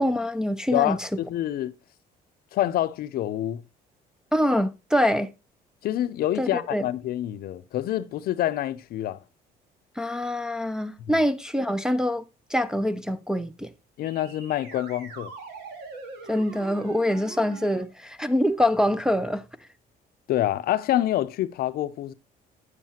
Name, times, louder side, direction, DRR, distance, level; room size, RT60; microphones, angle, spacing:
voice 1, 0.0-1.1 4.3-5.3 6.4-6.9 10.0-12.2 12.5-13.7 16.3-19.4, left 1 dB, 5° right, 0.4 m, -25 dB
voice 2, 0.7-1.7 2.5-3.6 5.8-9.2 11.0-11.2 14.0-15.3 20.3-22.1, left 13 dB, 65° left, 0.5 m, -27 dB
sound 1, 14.0-17.8, right 4 dB, 80° right, 1.8 m, -42 dB
8.1 x 7.5 x 2.8 m
cardioid pair, 110°, 17 cm